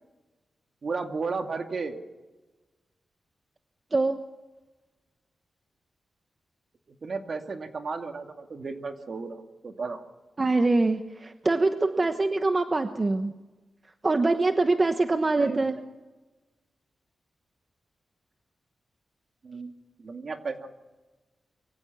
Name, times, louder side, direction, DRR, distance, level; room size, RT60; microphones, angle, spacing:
voice 1, 0.8-2.0 7.0-10.0 15.4-15.8 19.4-19.7 20.0-20.7, right 4 dB, 55° right, 5 dB, 2.3 m, -34 dB
voice 2, 3.9-4.2 10.4-13.3 14.0-15.8, right 3 dB, 35° right, 8 dB, 1.1 m, -24 dB
24.0 x 15.5 x 7.1 m, 1.2 s
cardioid pair, 65°, 0 cm